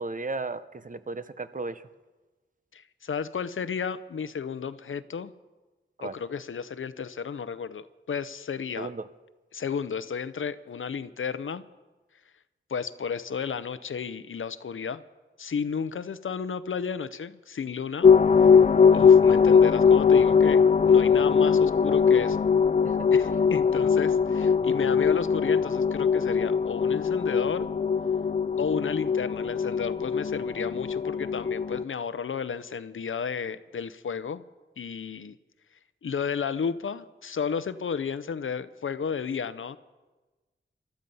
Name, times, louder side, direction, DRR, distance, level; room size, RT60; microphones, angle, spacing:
voice 1, 0.0-1.8 6.0-6.1 8.8-9.1 22.8-23.0, right 3 dB, 40° right, 13 dB, 0.8 m, -35 dB
voice 2, 2.7-5.3 6.0-8.9 9.5-11.6 12.7-15.0 15.4-18.1 18.6-22.4 23.1-27.7 28.6-34.4 34.8-35.4 36.0-39.8, left 6 dB, 85° left, 14 dB, 0.7 m, -33 dB
sound 1, 18.0-31.8, left 6 dB, 35° left, 0.4 m, -21 dB
20.5 x 13.0 x 5.5 m, 1.2 s
wide cardioid pair, 90°, 20 cm